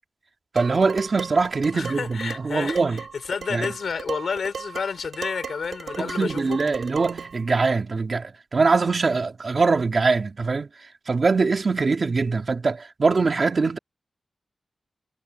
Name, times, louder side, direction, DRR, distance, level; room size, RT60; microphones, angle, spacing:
voice 1, 0.5-3.0 3.5-3.7 6.0-10.7 11.1-13.8, right 4 dB, 45° right, 3.0 m, -23 dB
Dishes pots and pans, 0.6-7.4, right 5 dB, 85° right, 3.1 m, -37 dB
voice 2, 1.7-2.8 3.3-6.6, left 5 dB, 80° left, 3.5 m, -30 dB
wide cardioid pair, 155°, 0 cm